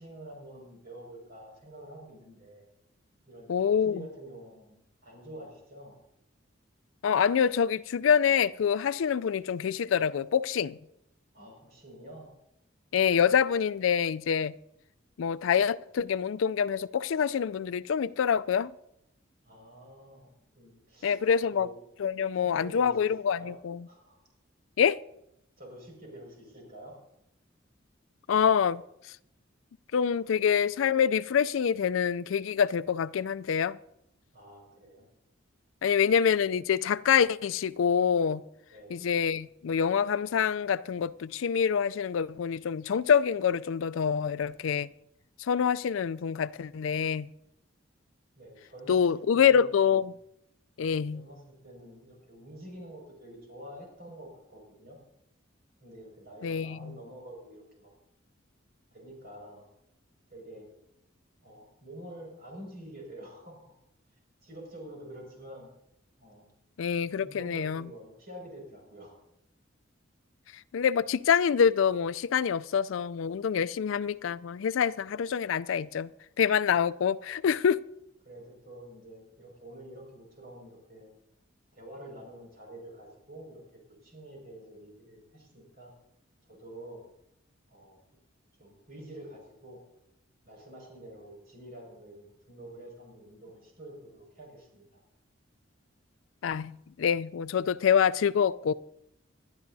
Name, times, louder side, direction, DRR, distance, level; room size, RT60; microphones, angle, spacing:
voice 1, 0.0-2.6 3.3-6.0 11.3-12.3 19.4-21.8 22.3-23.0 23.3-23.5 23.9-24.2 25.6-27.0 34.3-35.0 35.8-35.9 38.7-39.0 48.4-49.9 50.8-55.0 55.8-57.9 58.9-59.7 60.3-60.7 61.4-63.7 64.4-65.7 66.2-66.5 67.2-69.2 78.2-81.1 81.7-83.6 84.0-85.9 86.5-87.0 87.7-88.0 88.6-89.8 90.5-95.0, right 1 dB, 50° right, 5.6 m, -48 dB
voice 2, 3.5-4.1 7.0-10.8 12.9-14.6 15.2-18.7 21.0-21.7 22.0-23.9 24.8-25.0 28.3-28.8 29.9-33.8 35.8-38.4 38.9-44.9 45.4-47.3 48.9-50.1 50.8-51.3 56.4-57.0 66.8-67.9 70.7-76.1 76.4-77.8 96.4-98.7, left 7 dB, 80° left, 0.4 m, -26 dB
21.0 x 12.0 x 2.7 m
head